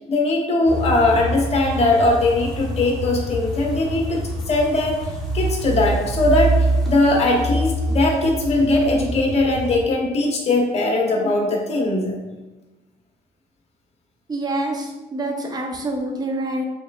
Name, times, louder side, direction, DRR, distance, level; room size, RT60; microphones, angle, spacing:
voice 1, 0.1-4.2 4.5-5.0 5.3-6.6 6.8-12.1, left 2 dB, 40° left, 0 dB, 1.1 m, -20 dB
sound 1, 0.6-9.8, right 1 dB, ahead, 1.2 m, -26 dB
voice 2, 14.3-16.6, right 1 dB, 25° right, 1 dB, 0.7 m, -26 dB
4.9 x 3.3 x 2.4 m, 1.1 s
cardioid pair, 110°, 17 cm